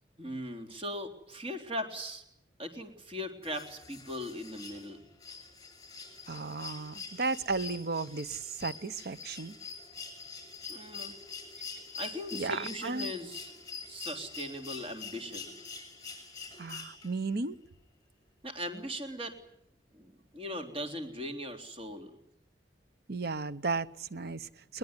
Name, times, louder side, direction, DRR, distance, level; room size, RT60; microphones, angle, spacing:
voice 1, 0.2-2.2 2.6-5.0 10.7-11.1 12.0-13.5 13.9-15.5 18.4-19.4 19.9-22.2, equal, 30° right, 5 dB, 3.6 m, -39 dB
sound 1, 3.4-17.3 18.8-18.9, left 5 dB, 20° left, 6.7 m, -45 dB
voice 2, 6.3-9.6 12.3-13.1 16.6-17.6 23.1-24.8, right 3 dB, 60° right, 15 dB, 0.9 m, -34 dB
21.5 x 21.0 x 9.8 m, 0.78 s
head